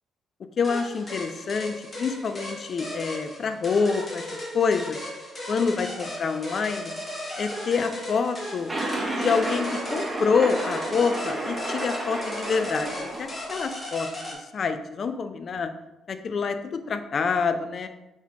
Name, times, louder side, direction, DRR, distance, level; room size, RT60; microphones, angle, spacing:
voice 1, 0.6-4.2 4.5-5.0 5.5-6.9 7.4-8.7 9.1-14.3 14.5-15.7 16.1-17.9, left 5 dB, 50° left, 9 dB, 0.4 m, -26 dB
sound 1, 0.6-14.4, left 1 dB, 35° left, 1.3 m, -37 dB
sound 2, 8.7-13.6, right 1 dB, 15° right, 1.2 m, -31 dB
4.3 x 4.1 x 2.8 m, 0.99 s
cardioid pair, 90°, 0 cm